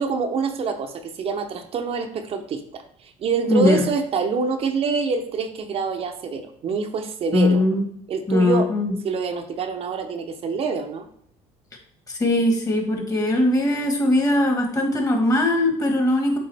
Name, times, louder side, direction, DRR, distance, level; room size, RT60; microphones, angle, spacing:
voice 1, 0.0-7.6 8.1-8.7 9.0-11.1, right 5 dB, 50° right, 6 dB, 0.7 m, -26 dB
voice 2, 3.5-3.9 7.3-7.8 8.3-8.9 12.1-16.4, left 1 dB, 25° left, 2 dB, 1.6 m, -20 dB
7.7 x 3.6 x 3.4 m, 0.66 s
cardioid pair, 100°, 13 cm